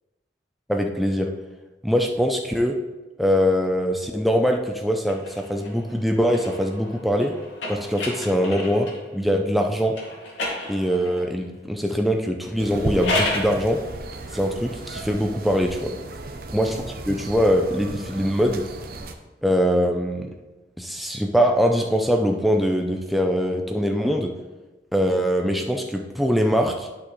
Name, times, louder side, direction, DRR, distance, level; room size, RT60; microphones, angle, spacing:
voice 1, 0.7-1.3 1.8-2.8 3.2-7.4 7.7-10.0 10.7-13.8 14.3-15.9 16.5-18.6 19.4-20.3 20.8-24.3 24.9-26.9, equal, ahead, 2 dB, 0.5 m, -22 dB
sound 1, 5.0-9.1 9.9-11.3 12.7-13.5, left 2 dB, 90° left, 2.1 m, -31 dB
sound 2, 12.6-19.1, right 2 dB, 50° right, 0.7 m, -35 dB
10.5 x 5.9 x 3.1 m, 1.2 s
head